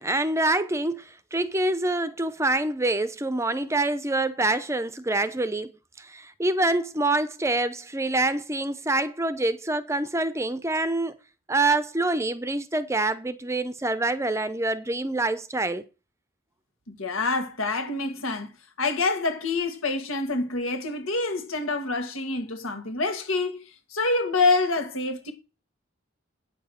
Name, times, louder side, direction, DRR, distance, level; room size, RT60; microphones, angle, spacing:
voice 1, 0.0-5.7 6.0-11.2 11.5-15.9, right 2 dB, 15° right, 0.6 m, -26 dB
voice 2, 16.9-18.5 18.8-25.3, left 3 dB, 90° left, 2.0 m, -26 dB
9.1 x 7.1 x 6.4 m
head